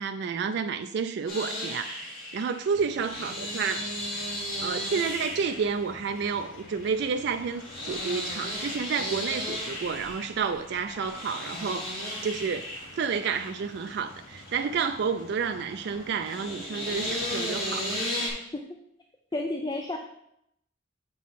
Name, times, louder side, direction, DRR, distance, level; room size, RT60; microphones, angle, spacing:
voice 1, 0.0-3.9 4.6-11.9 12.2-18.1, right 6 dB, 60° right, 0.3 m, -30 dB
sound 1, 1.3-18.3, equal, 50° left, 2.7 m, -35 dB
sound 2, 2.7-18.1, left 1 dB, 75° left, 1.1 m, -51 dB
voice 2, 19.3-20.0, left 2 dB, 20° left, 0.4 m, -31 dB
7.3 x 3.8 x 5.7 m
head